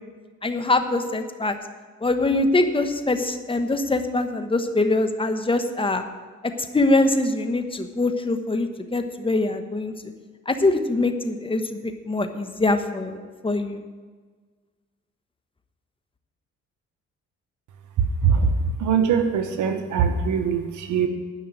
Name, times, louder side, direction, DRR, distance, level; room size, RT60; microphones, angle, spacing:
voice 1, 0.4-1.6 2.0-6.0 6.7-9.9 10.5-13.2 13.4-13.8, left 2 dB, 15° left, 7 dB, 1.1 m, -23 dB
voice 2, 18.2-21.1, right 6 dB, 75° right, 6 dB, 1.1 m, -22 dB
11.5 x 5.8 x 8.9 m, 1.5 s
cardioid pair, 90°, 30 cm